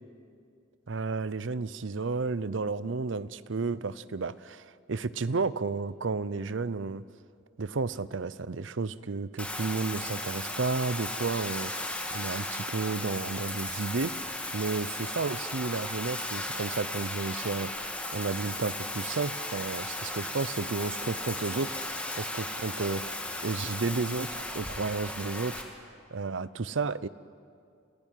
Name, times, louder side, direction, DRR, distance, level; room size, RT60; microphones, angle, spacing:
voice 1, 0.9-7.0 7.6-14.1 14.5-17.9 18.1-25.7 26.1-27.1, right 4 dB, 75° right, 17 dB, 0.7 m, -32 dB
Bathtub (filling or washing), 9.4-25.6, left 1 dB, 5° left, 2.2 m, -36 dB
29.0 x 15.5 x 9.1 m, 2.4 s
head